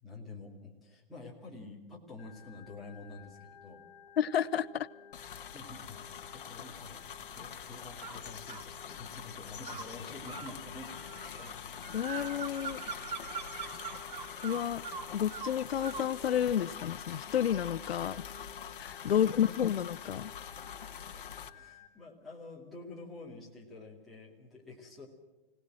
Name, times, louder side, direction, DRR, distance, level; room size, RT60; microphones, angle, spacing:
voice 1, 0.0-3.9 5.5-11.6 19.0-19.6 21.1-21.2 21.5-25.1, left 3 dB, ahead, -7 dB, 2.3 m, -48 dB
Organ, 2.2-21.9, left 7 dB, 35° left, 2.5 m, -56 dB
voice 2, 4.2-4.9 11.9-12.8 14.4-14.8 15.1-18.3 18.8-20.3, left 9 dB, 90° left, 16 dB, 0.8 m, -31 dB
sound 1, 5.1-21.5, left 8 dB, 60° left, 1.3 m, -45 dB
sound 2, 8.0-8.7 9.6-16.2, right 7 dB, 50° right, 1.1 m, -43 dB
25.5 x 18.0 x 7.6 m, 1.1 s
hypercardioid pair, 175°, 30 cm